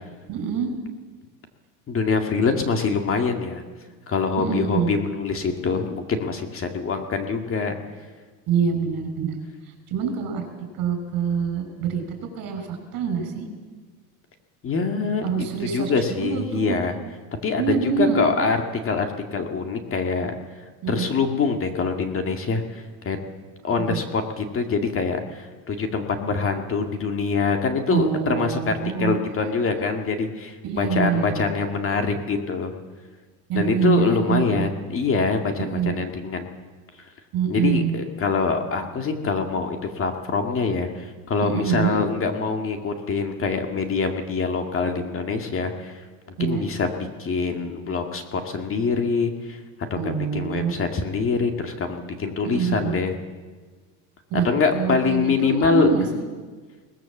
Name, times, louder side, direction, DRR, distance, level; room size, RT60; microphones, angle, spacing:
voice 1, 0.3-0.7 4.4-4.9 8.5-9.4 9.9-10.4 10.7-12.0 12.4-13.5 15.2-16.8 17.5-18.2 20.8-21.1 23.9-24.0 27.9-29.2 30.6-31.5 33.5-34.7 35.6-35.9 37.3-38.0 41.4-42.0 46.4-46.7 50.0-50.7 52.4-53.0 54.3-56.0, right 7 dB, 50° right, 6 dB, 5.8 m, -25 dB
voice 2, 1.9-3.6 4.1-7.7 14.6-15.5 15.7-16.9 17.4-20.3 20.9-23.2 23.6-32.7 33.5-36.5 37.5-46.0 46.4-49.6 49.9-53.1 54.4-55.9, left 4 dB, 30° left, 5 dB, 2.2 m, -24 dB
22.0 x 19.5 x 7.3 m, 1.4 s
cardioid pair, 140°, 43 cm